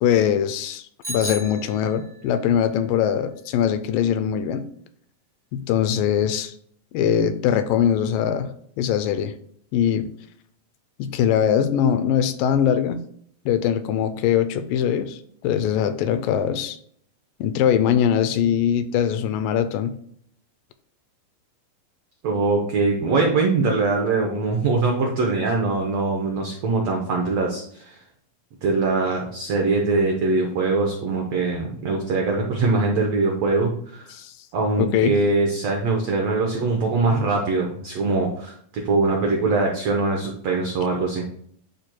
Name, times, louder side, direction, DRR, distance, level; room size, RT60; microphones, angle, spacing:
voice 1, 0.0-4.7 5.5-6.5 6.9-8.5 8.8-9.3 9.7-10.1 11.0-13.0 13.5-16.8 17.4-20.0 34.1-34.3 34.8-35.2, left 9 dB, 80° left, 10 dB, 2.1 m, -22 dB
Bicycle bell, 1.0-2.3, right 1 dB, 20° right, 1.5 m, -34 dB
voice 2, 22.2-28.0 28.6-34.1 34.5-41.2, right 3 dB, 75° right, 1 dB, 1.5 m, -22 dB
11.5 x 4.4 x 2.2 m, 0.64 s
omnidirectional pair, 4.1 m